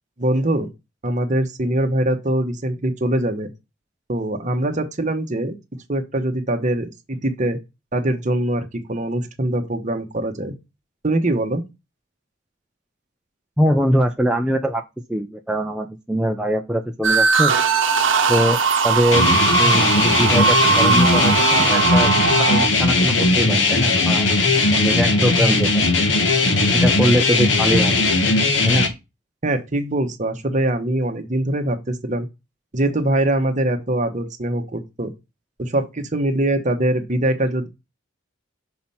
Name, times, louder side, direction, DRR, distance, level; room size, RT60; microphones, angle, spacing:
voice 1, 0.2-0.7 1.0-3.5 4.1-5.5 5.9-7.6 7.9-10.5 11.0-11.6 29.4-32.3 32.7-35.1 35.6-37.7, right 1 dB, 40° right, 1.1 m, -22 dB
voice 2, 13.6-14.8 15.1-17.5 18.3-19.3 19.6-22.1 22.4-24.3 24.5-25.8 26.7-28.0 28.6-28.9, equal, 5° right, 0.5 m, -22 dB
sound 1, 17.0-22.7, right 5 dB, 70° right, 0.9 m, -19 dB
sound 2, 19.1-28.9, left 3 dB, 70° left, 1.4 m, -18 dB
6.0 x 4.3 x 5.5 m
head